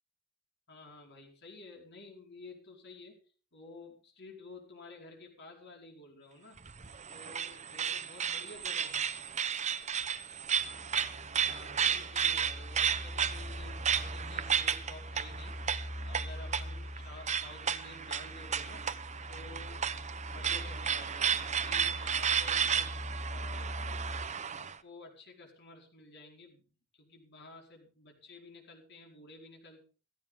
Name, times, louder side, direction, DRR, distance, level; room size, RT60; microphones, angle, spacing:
voice 1, 0.7-3.2 3.5-6.6 7.1-9.0 11.5-15.6 16.0-18.8 19.3-19.9 20.3-22.9 23.3-23.7 24.5-26.7 27.0-29.8, left 2 dB, 55° left, 1 dB, 4.9 m, -52 dB
sound 1, 6.6-24.7, right 7 dB, 35° right, 0.9 m, -33 dB
sound 2, 10.5-24.3, left 1 dB, 80° left, 2.6 m, -43 dB
16.5 x 15.5 x 3.8 m, 0.38 s
head